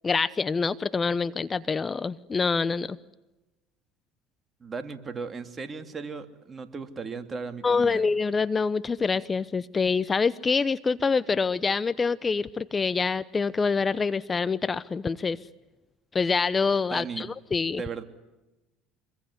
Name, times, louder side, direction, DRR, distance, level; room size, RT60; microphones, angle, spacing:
voice 1, 0.0-3.0 7.6-15.4 16.1-17.8, left 4 dB, 25° left, 16 dB, 0.9 m, -26 dB
voice 2, 4.6-8.1 16.9-17.3 17.8-18.0, right 5 dB, 30° right, 7 dB, 3.0 m, -36 dB
27.0 x 22.5 x 9.8 m, 1.0 s
hypercardioid pair, 75°, 0 cm